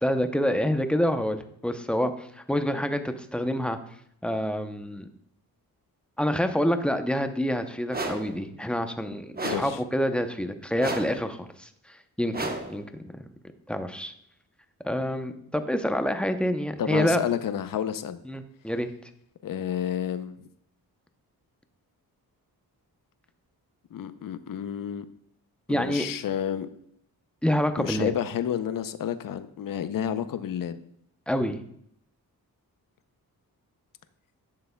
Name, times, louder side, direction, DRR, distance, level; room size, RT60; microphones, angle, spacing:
voice 1, 0.0-3.8 4.2-5.1 6.2-13.1 13.7-14.1 14.8-17.2 18.2-18.9 25.7-26.1 27.4-28.1 31.3-31.6, equal, 5° left, 8 dB, 0.6 m, -27 dB
sound 1, 7.9-8.4 9.4-9.8 10.8-11.3 12.3-12.8, right 2 dB, 25° right, 0.9 m, -32 dB
voice 2, 9.4-9.8 16.8-18.2 19.4-20.5 23.9-25.1 25.7-26.7 27.8-30.8, left 9 dB, 60° left, 12 dB, 0.6 m, -30 dB
10.5 x 6.8 x 2.2 m, 0.70 s
cardioid pair, 75°, 37 cm